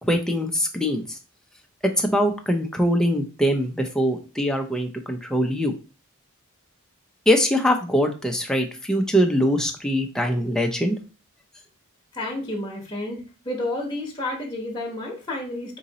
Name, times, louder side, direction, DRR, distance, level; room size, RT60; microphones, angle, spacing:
voice 1, 0.0-1.2 2.0-5.7 7.3-11.0, equal, 5° left, 3 dB, 0.5 m, -22 dB
voice 2, 12.1-15.8, left 1 dB, 20° left, -2 dB, 1.0 m, -31 dB
3.8 x 2.8 x 4.0 m, 0.33 s
head